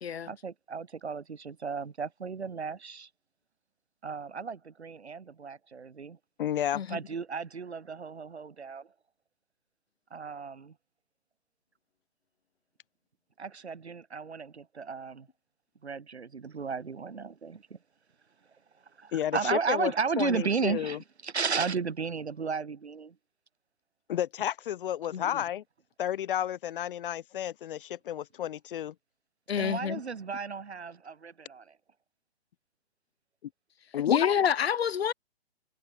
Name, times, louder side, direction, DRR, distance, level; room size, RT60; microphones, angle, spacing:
voice 1, 0.3-3.1 4.0-6.2 6.9-8.9 10.1-10.7 13.4-15.3 15.8-17.8 18.8-23.2 29.6-31.8, right 5 dB, 90° right, 3.2 m, -34 dB
voice 2, 6.4-6.8 19.1-19.9 20.2-21.0 24.1-25.6 26.0-28.9 33.9-34.2, left 11 dB, 55° left, 0.5 m, -31 dB
voice 3, 25.1-25.4 29.5-30.0 34.1-35.1, left 8 dB, 75° left, 1.3 m, -28 dB
hypercardioid pair, 150°, 32 cm